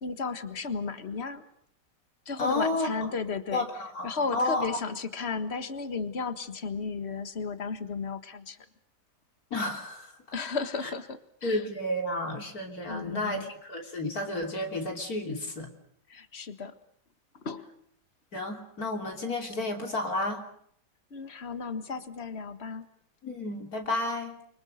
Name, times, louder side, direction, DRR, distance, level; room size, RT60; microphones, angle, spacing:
voice 1, 0.0-1.4 2.3-3.7 4.0-8.6 10.3-11.6 12.9-13.5 16.1-16.7 17.3-17.7 21.1-22.9, left 5 dB, 40° left, 10 dB, 1.8 m, -34 dB
voice 2, 2.4-2.9 3.5-4.8 9.5-10.1 11.4-15.7 18.3-20.4 23.2-24.4, left 2 dB, 55° left, 3 dB, 3.7 m, -31 dB
29.5 x 24.5 x 6.5 m, 0.66 s
omnidirectional pair, 1.8 m